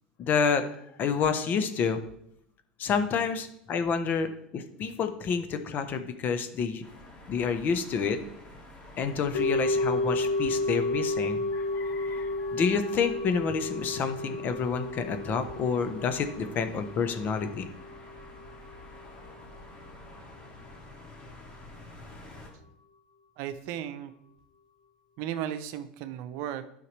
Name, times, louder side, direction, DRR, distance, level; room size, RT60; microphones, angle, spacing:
voice 1, 0.2-0.7 1.0-2.0 2.8-6.8 7.3-8.2 9.0-17.7, left 6 dB, 45° left, 9 dB, 1.0 m, -29 dB
sound 1, 6.8-22.5, left 2 dB, 25° left, 2.6 m, -49 dB
sound 2, 9.3-19.6 19.9-20.0, left 2 dB, 80° left, 1.4 m, -32 dB
voice 2, 23.4-24.1 25.2-26.6, right 10 dB, 60° right, 10 dB, 0.8 m, -35 dB
10.5 x 5.7 x 3.4 m, 0.74 s
hypercardioid pair, 90°, 4 cm